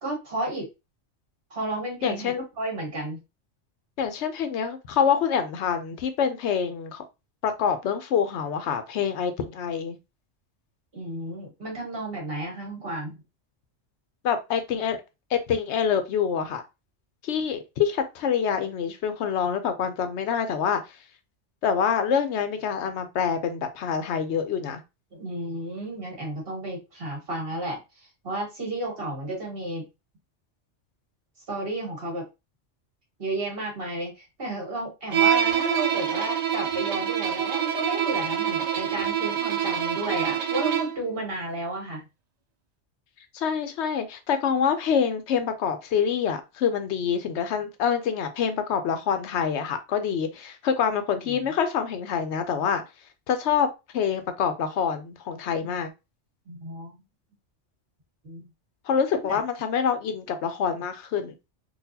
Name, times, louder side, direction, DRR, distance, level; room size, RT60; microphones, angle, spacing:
voice 1, 0.0-0.7 1.5-3.2 10.9-13.2 25.1-29.9 31.5-32.2 33.2-42.0 51.2-51.4 55.6-55.7 56.5-56.9 58.2-58.5 59.3-59.4, right 1 dB, 50° right, 1.7 m, -32 dB
voice 2, 2.0-2.4 4.0-7.0 7.4-10.0 14.2-15.0 15.3-16.6 17.2-20.8 21.6-24.8 43.3-52.8 53.3-53.7 53.9-55.9 58.9-61.3, left 7 dB, 75° left, 0.9 m, -26 dB
Bowed string instrument, 35.1-41.1, right 9 dB, 70° right, 0.3 m, -26 dB
3.9 x 2.5 x 2.7 m
omnidirectional pair, 1.2 m